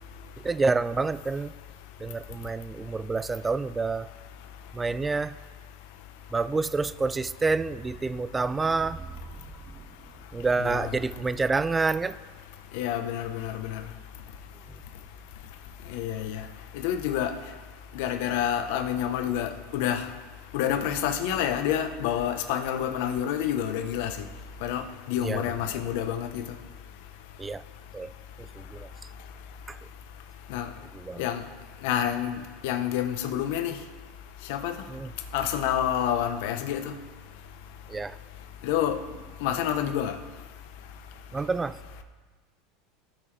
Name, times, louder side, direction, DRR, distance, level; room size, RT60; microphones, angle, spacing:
voice 1, 0.4-1.5 2.0-4.1 4.7-5.4 6.3-9.2 9.7-9.8 10.3-12.2 14.7-14.8 25.2-25.4 25.7-25.9 27.4-27.6 27.9-28.1 28.4-28.9 29.7-29.8 30.9-31.3 34.9-35.1 37.9-38.2 41.3-41.8, right 4 dB, 15° right, 0.3 m, -28 dB
voice 2, 10.6-10.9 12.7-13.8 15.9-16.4 16.7-17.3 18.0-20.1 20.5-24.1 24.6-26.4 30.5-30.7 31.2-31.4 31.8-32.3 32.6-33.8 34.5-34.7 35.3-36.9 38.6-39.0 39.4-40.2, left 10 dB, 70° left, 0.9 m, -28 dB
17.5 x 5.9 x 3.3 m
supercardioid pair, 115°, 0 cm